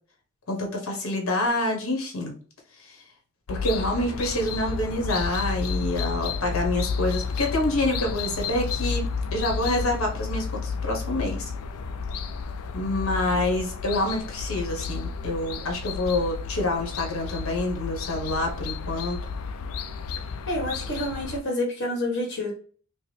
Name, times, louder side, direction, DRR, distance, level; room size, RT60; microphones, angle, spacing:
voice 1, 0.5-2.3 3.5-9.0 9.3-11.5 12.7-19.2, left 1 dB, 70° left, 2 dB, 1.1 m, -27 dB
sound 1, 3.5-21.4, left 5 dB, 90° left, 0.4 m, -31 dB
voice 2, 20.5-22.5, left 1 dB, 50° left, 0 dB, 1.5 m, -28 dB
4.6 x 2.0 x 3.3 m, 0.43 s
head